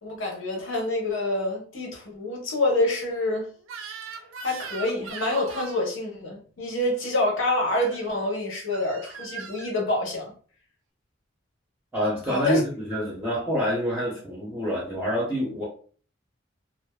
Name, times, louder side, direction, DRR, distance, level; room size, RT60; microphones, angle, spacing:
voice 1, 0.0-3.5 4.4-10.3 12.3-12.6, left 2 dB, 80° left, 0 dB, 0.9 m, -27 dB
Crying sobbing / Screech, 3.7-5.9 7.8-8.1 8.7-9.7, right 6 dB, 80° right, 0.4 m, -39 dB
voice 2, 11.9-15.6, equal, 10° right, -7 dB, 0.6 m, -27 dB
2.5 x 2.5 x 2.2 m, 0.44 s
head